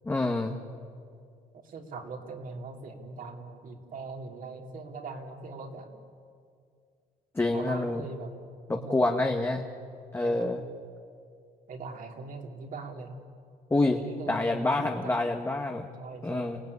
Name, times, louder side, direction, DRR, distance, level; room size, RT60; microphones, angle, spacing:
voice 1, 0.0-0.6 7.4-8.0 8.7-9.6 10.1-10.6 13.7-14.0 14.3-15.9 16.2-16.6, left 2 dB, 15° left, 2 dB, 1.6 m, -27 dB
voice 2, 1.6-5.9 7.5-8.3 8.7-9.3 10.2-10.5 11.7-13.2 14.0-15.2 16.0-16.6, right 3 dB, 55° right, 2 dB, 3.3 m, -41 dB
29.0 x 17.5 x 9.8 m, 2.3 s
cardioid pair, 110°, 17 cm